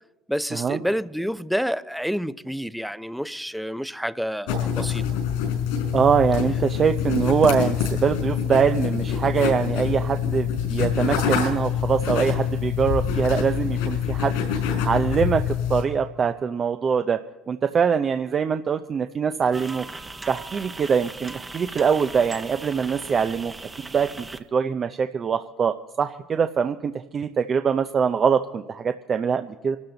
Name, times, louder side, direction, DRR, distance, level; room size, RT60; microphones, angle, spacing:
voice 1, 0.3-5.0, equal, ahead, 0.6 m, -28 dB
sound 1, 4.5-15.8, left 8 dB, 85° left, 5.1 m, -25 dB
voice 2, 5.9-14.4 14.6-17.2 17.5-19.9 20.3-23.5 23.9-24.3 24.5-29.8, right 6 dB, 40° right, 0.6 m, -23 dB
sound 2, 19.5-24.4, right 3 dB, 20° right, 1.1 m, -38 dB
24.5 x 12.5 x 4.0 m
supercardioid pair, 85°, 0 cm